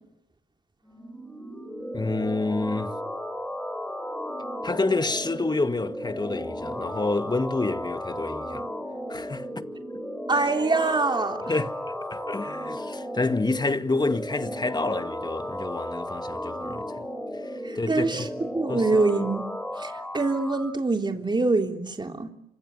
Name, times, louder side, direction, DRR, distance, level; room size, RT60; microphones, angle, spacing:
sound 1, 0.8-20.8, equal, 5° left, 5.8 m, -34 dB
voice 1, 1.9-2.9 4.6-8.6 9.1-9.4 11.5-11.7 12.1-17.1 17.4-18.3 18.7-18.9, left 3 dB, 25° left, 2.2 m, -28 dB
voice 2, 10.3-11.4 17.6-19.4 19.8-22.3, right 3 dB, 25° right, 3.4 m, -25 dB
27.0 x 26.5 x 8.1 m
supercardioid pair, 55°, 18 cm